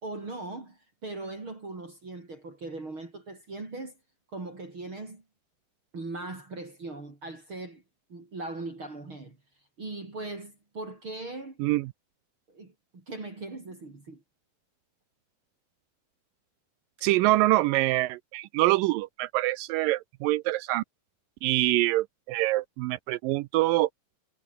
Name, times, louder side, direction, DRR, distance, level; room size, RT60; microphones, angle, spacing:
voice 1, 0.0-3.9 4.3-5.2 5.9-7.8 8.1-9.4 9.8-11.6 12.5-14.2, right 2 dB, 35° right, 5.5 m, -39 dB
voice 2, 11.6-11.9 17.0-20.8 21.4-23.9, right 18 dB, 80° right, 2.1 m, -25 dB
omnidirectional pair, 4.2 m